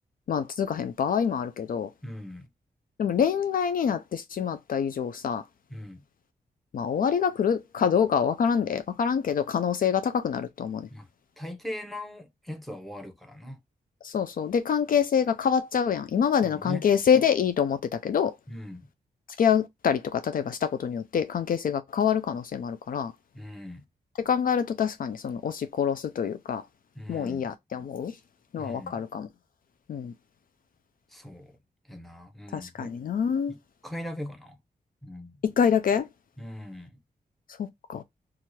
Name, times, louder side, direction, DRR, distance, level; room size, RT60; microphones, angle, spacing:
voice 1, 0.3-1.9 3.0-5.4 6.7-10.9 14.0-18.3 19.4-23.1 24.2-26.6 27.1-28.1 28.5-29.3 29.9-30.1 32.5-33.5 35.4-36.1 37.6-38.0, left 7 dB, 60° left, 0.4 m, -26 dB
voice 2, 2.0-2.5 5.7-6.0 10.9-11.1 11.4-13.6 16.4-16.9 18.5-18.9 23.3-23.8 26.9-27.5 28.6-29.0 31.1-31.6 31.8-32.9 33.5-34.6 35.0-35.4 36.4-37.0, left 1 dB, ahead, 0.9 m, -40 dB
2.7 x 2.4 x 2.9 m
cardioid pair, 85°, 16 cm